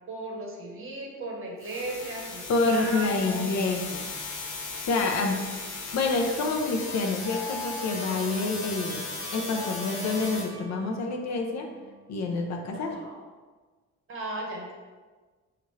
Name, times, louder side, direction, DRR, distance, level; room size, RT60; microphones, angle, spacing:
voice 1, 0.1-3.5 12.7-13.2 14.1-14.7, right 2 dB, 45° right, -1 dB, 0.8 m, -36 dB
sound 1, 1.6-10.4, left 3 dB, 85° left, 0.9 m, -37 dB
voice 2, 2.5-4.1 4.9-5.4 5.9-9.0 9.3-11.7 12.1-13.0, left 3 dB, 60° left, 2 dB, 0.6 m, -27 dB
sound 2, 7.2-12.3, left 1 dB, 10° right, 0.5 m, -41 dB
4.2 x 2.5 x 3.1 m, 1.3 s
cardioid pair, 135°, 31 cm